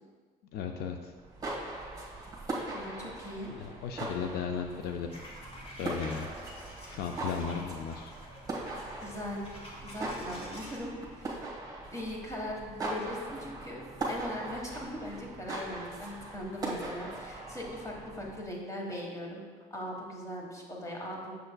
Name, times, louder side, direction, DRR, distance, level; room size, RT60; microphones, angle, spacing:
voice 1, 0.5-1.1 3.5-5.1 5.8-6.3 6.6-8.1, left 7 dB, 70° left, 4 dB, 0.4 m, -36 dB
sound 1, 1.2-18.5, right 2 dB, 20° right, 1.6 m, -40 dB
voice 2, 2.7-3.6 9.0-9.4 9.8-11.4 11.9-13.8 14.1-19.4 19.7-21.3, left 1 dB, 20° left, -1 dB, 1.3 m, -40 dB
sound 2, 5.1-10.8, equal, 35° left, 1.5 m, -49 dB
6.7 x 6.5 x 2.2 m, 1.5 s
cardioid pair, 110°, 17 cm